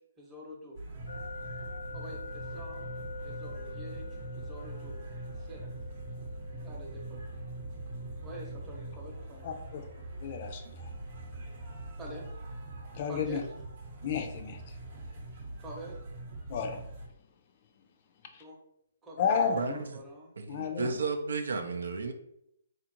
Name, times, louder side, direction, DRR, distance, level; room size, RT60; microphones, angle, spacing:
voice 1, 0.2-0.8 1.9-2.9 3.2-5.0 5.4-5.7 6.6-7.2 8.2-9.5 12.0-12.2 13.1-13.5 15.6-16.0 18.4-18.6 19.0-20.3, equal, 10° right, -3 dB, 0.8 m, -46 dB
sound 1, 0.8-17.1, right 2 dB, 45° right, 0.8 m, -42 dB
sound 2, 1.1-14.0, left 5 dB, 85° left, 0.7 m, -49 dB
voice 2, 9.4-9.8 10.2-10.9 12.9-13.4 14.0-14.6 16.5-16.8 18.3-18.4 19.2-19.8 20.5-21.0, left 6 dB, 40° left, 5 dB, 0.4 m, -32 dB
voice 3, 19.5-19.9 20.4-22.1, right 4 dB, 80° right, 6 dB, 0.5 m, -33 dB
4.2 x 2.5 x 2.9 m, 0.76 s
hypercardioid pair, 155°, 0 cm